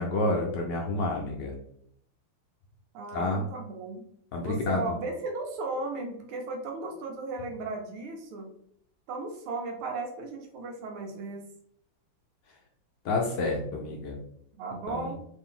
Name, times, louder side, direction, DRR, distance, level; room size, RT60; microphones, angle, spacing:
voice 1, 0.0-1.5 3.1-3.4 4.3-4.8 13.0-14.2 14.9-15.1, left 2 dB, 70° left, 0 dB, 1.1 m, -29 dB
voice 2, 2.9-4.0 4.4-8.5 9.1-11.4 14.6-15.2, right 3 dB, 80° right, 2 dB, 1.7 m, -35 dB
3.7 x 2.6 x 3.6 m, 0.71 s
omnidirectional pair, 2.3 m